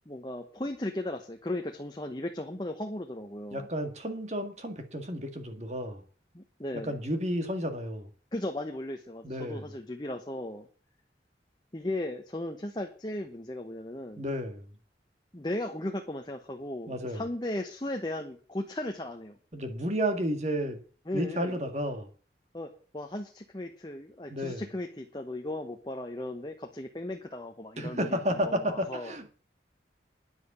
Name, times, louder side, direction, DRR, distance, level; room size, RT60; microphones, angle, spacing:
voice 1, 0.1-3.7 6.3-6.9 8.3-10.7 11.7-14.2 15.3-19.4 21.1-21.6 22.5-28.2 28.4-29.1, left 1 dB, 25° left, 4 dB, 1.0 m, -36 dB
voice 2, 3.5-6.0 6.7-8.1 9.2-9.7 14.2-14.7 16.9-17.2 19.5-20.8 21.1-22.1 24.3-24.7 27.8-29.3, equal, 40° right, 7 dB, 1.8 m, -32 dB
10.0 x 7.7 x 8.4 m, 0.40 s
head